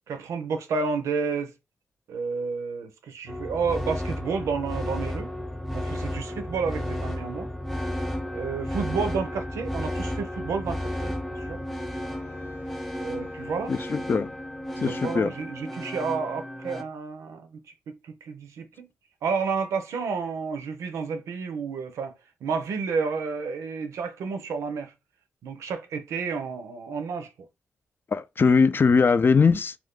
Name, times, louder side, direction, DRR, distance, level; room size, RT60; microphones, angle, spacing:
voice 1, 0.1-1.5 2.1-5.3 5.7-7.5 8.3-11.6 13.0-13.7 14.8-17.6 17.9-18.9 19.2-22.1 22.4-24.9 25.4-27.3, right 5 dB, 90° right, 0.6 m, -31 dB
sound 1, 3.3-16.8, left 1 dB, ahead, 0.6 m, -33 dB
Wind instrument woodwind instrument, 11.5-15.7, left 2 dB, 75° left, 0.9 m, -45 dB
voice 2, 13.7-14.3 14.8-15.3 28.1-29.8, left 5 dB, 45° left, 0.4 m, -21 dB
2.5 x 2.4 x 3.6 m
cardioid pair, 60°, 5 cm